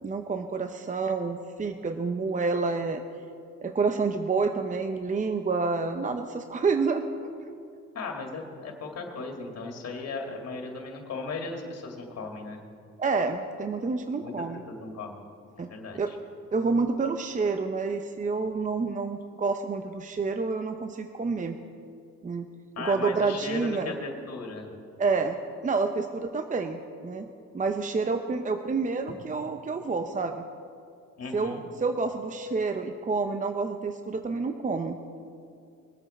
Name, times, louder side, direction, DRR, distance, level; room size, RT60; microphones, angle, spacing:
voice 1, 0.0-3.0 3.6-7.0 13.0-14.6 15.6-15.7 15.9-16.1 16.5-21.6 22.2-22.5 22.8-23.9 25.0-25.4 25.6-27.3 27.5-30.4 31.3-35.0, right 4 dB, 25° right, 7 dB, 0.7 m, -28 dB
voice 2, 7.9-12.6 14.2-14.3 14.7-15.3 15.6-16.2 22.8-24.7 31.2-31.6, left 3 dB, 55° left, 2 dB, 2.3 m, -37 dB
21.5 x 8.4 x 4.2 m, 2.4 s
cardioid pair, 90°, 30 cm